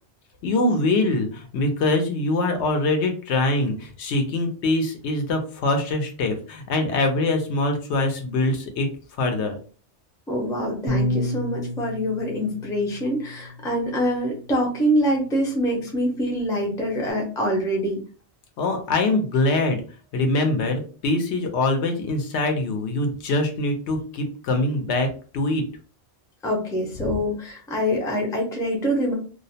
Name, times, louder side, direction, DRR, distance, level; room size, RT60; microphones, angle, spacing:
voice 1, 0.4-8.9 9.2-9.6 18.6-19.8 20.1-25.6 27.1-27.2, left 2 dB, 75° left, 4 dB, 0.9 m, -23 dB
voice 2, 10.3-18.0 26.4-29.1, equal, 5° left, -1 dB, 0.3 m, -25 dB
Bass guitar, 10.9-17.1, equal, 45° right, 0.5 m, -33 dB
2.4 x 2.0 x 2.7 m, 0.38 s
omnidirectional pair, 1.2 m